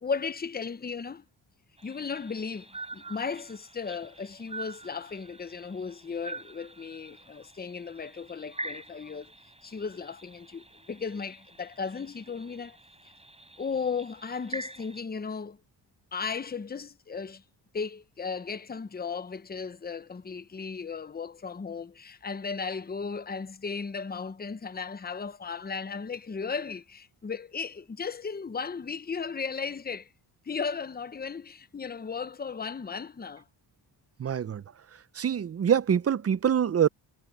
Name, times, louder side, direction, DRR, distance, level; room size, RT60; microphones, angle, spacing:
voice 1, 0.0-1.2 1.8-9.3 9.6-12.8 13.6-15.6 16.1-17.4 17.7-30.1 30.4-33.4, left 5 dB, 20° left, 0.9 m, -35 dB
sound 1, 1.8-15.0, right 2 dB, 15° right, 4.2 m, -45 dB
voice 2, 34.2-34.6 35.2-36.9, right 8 dB, 35° right, 0.6 m, -25 dB
cardioid pair, 90°, 44 cm